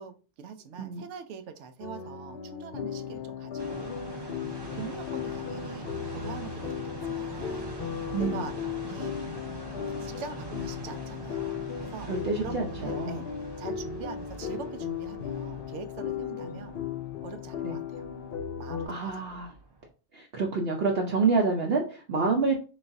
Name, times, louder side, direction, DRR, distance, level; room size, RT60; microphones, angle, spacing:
voice 1, 0.0-4.0 4.6-9.2 10.0-13.3 13.6-16.8 17.2-18.1 18.6-19.1, right 6 dB, 90° right, 0.9 m, -43 dB
sound 1, 1.8-18.9, left 8 dB, 60° left, 0.8 m, -36 dB
sound 2, 3.6-19.8, right 3 dB, 30° right, 0.5 m, -44 dB
voice 2, 8.1-8.5 12.1-13.2 17.6-17.8 18.9-19.5 20.1-22.6, right 4 dB, 60° right, 0.8 m, -28 dB
3.9 x 3.3 x 2.6 m
omnidirectional pair, 1.2 m